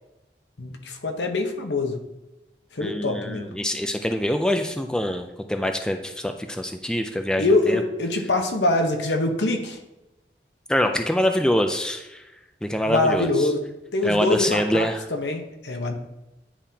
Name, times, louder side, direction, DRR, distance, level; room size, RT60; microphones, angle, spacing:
voice 1, 0.6-2.0 2.7-3.5 7.4-9.8 12.9-13.6 13.9-15.9, left 2 dB, 85° left, 4 dB, 0.9 m, -24 dB
voice 2, 2.8-7.8 10.7-12.2 12.6-13.5 14.0-15.1, equal, 5° left, 6 dB, 0.3 m, -25 dB
9.9 x 3.6 x 2.8 m, 0.97 s
head